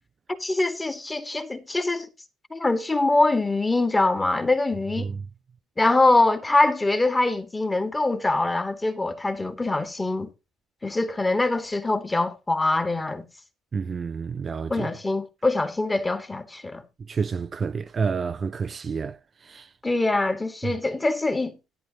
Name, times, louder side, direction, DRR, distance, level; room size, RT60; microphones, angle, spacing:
voice 1, 0.4-2.1 2.5-5.1 5.8-10.3 10.8-13.2 14.7-16.8 19.8-21.5, left 2 dB, 15° left, 2.0 m, -23 dB
voice 2, 13.7-14.9 17.1-19.7 20.6-20.7, right 5 dB, 35° right, 0.5 m, -29 dB
13.0 x 10.5 x 2.9 m
hypercardioid pair, 60°, 0 cm